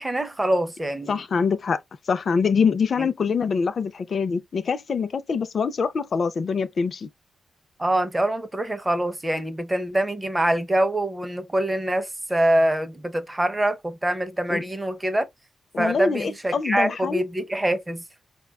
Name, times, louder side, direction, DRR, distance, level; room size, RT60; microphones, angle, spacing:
voice 1, 0.0-1.2 3.0-3.1 7.8-15.3 15.8-18.0, right 1 dB, 15° right, 0.5 m, -24 dB
voice 2, 1.1-1.8 2.1-7.1 14.5-14.6 15.7-17.2, left 5 dB, 45° left, 0.4 m, -24 dB
4.7 x 2.2 x 2.3 m
wide cardioid pair, 135°, 0 cm